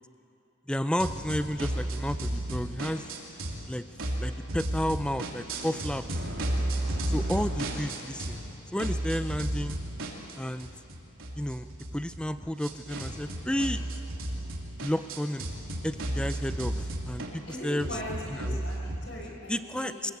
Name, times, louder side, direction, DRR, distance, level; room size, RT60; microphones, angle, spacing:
voice 1, 0.7-3.0 3.7-3.8 4.2-6.2 7.1-8.4 8.7-9.8 10.4-10.7 11.4-13.9 14.8-15.5 15.8-17.9 18.4-18.6 19.5-20.1, equal, 5° left, 11 dB, 0.5 m, -32 dB
sound 1, 1.0-3.7 4.0-8.5 8.8-19.0, right 1 dB, 75° right, 3.2 m, -34 dB
voice 2, 17.5-20.1, equal, 60° left, -1 dB, 5.7 m, -40 dB
24.5 x 20.5 x 8.2 m, 2.8 s
head